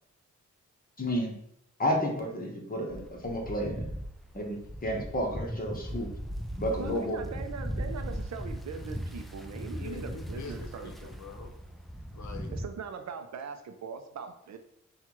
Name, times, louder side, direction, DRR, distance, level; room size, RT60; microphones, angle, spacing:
voice 1, 1.0-1.3 1.8-3.8 4.3-6.1 6.5-7.2, equal, 30° left, 1 dB, 1.0 m, -31 dB
sound 1, 2.9-12.6, equal, ahead, 0.4 m, -38 dB
voice 2, 6.8-11.1 12.5-14.6, right 6 dB, 65° right, 7 dB, 0.5 m, -41 dB
voice 3, 9.8-11.5 12.1-12.6, left 5 dB, 75° left, 4 dB, 0.7 m, -45 dB
5.7 x 2.4 x 3.0 m, 0.78 s
cardioid pair, 80°, 29 cm